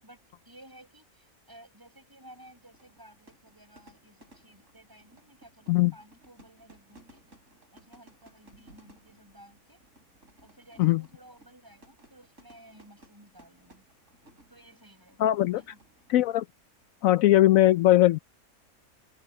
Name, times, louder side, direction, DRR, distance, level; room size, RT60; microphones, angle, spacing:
voice 1, 0.0-7.2 7.7-9.8 10.4-13.9 14.5-15.8, right 1 dB, 15° right, 7.4 m, -55 dB
Fire / Fireworks, 2.4-16.4, right 1 dB, 55° right, 5.3 m, -59 dB
voice 2, 15.2-15.6 16.1-16.4 17.0-18.2, left 14 dB, 75° left, 0.9 m, -20 dB
omnidirectional pair, 1.5 m